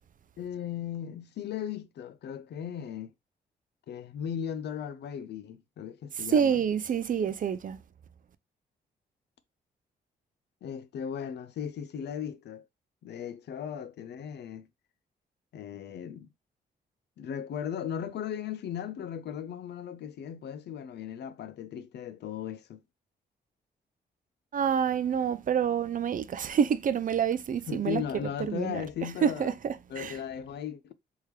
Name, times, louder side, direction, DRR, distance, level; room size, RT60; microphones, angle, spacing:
voice 1, 0.4-3.1 3.9-6.6 10.6-12.6 13.0-14.7 15.5-16.3 17.2-22.8 27.7-29.5 29.9-30.9, left 8 dB, 70° left, 0.5 m, -37 dB
voice 2, 6.2-7.8 24.5-28.0 28.4-28.8 29.2-30.2, right 7 dB, 50° right, 0.5 m, -27 dB
3.6 x 3.0 x 3.3 m
cardioid pair, 70°, 18 cm